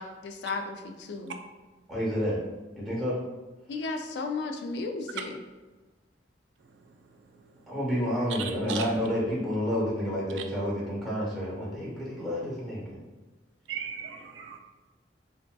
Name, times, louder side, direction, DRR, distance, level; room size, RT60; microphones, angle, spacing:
voice 1, 0.0-1.4 3.7-5.4, left 3 dB, 65° left, 5 dB, 0.3 m, -34 dB
voice 2, 1.9-2.4 2.8-3.2 7.7-13.0, equal, ahead, -7 dB, 0.9 m, -29 dB
voice 3, 8.4-8.9 13.7-14.6, right 7 dB, 85° right, 4 dB, 0.4 m, -36 dB
3.4 x 2.6 x 2.2 m, 1.2 s
head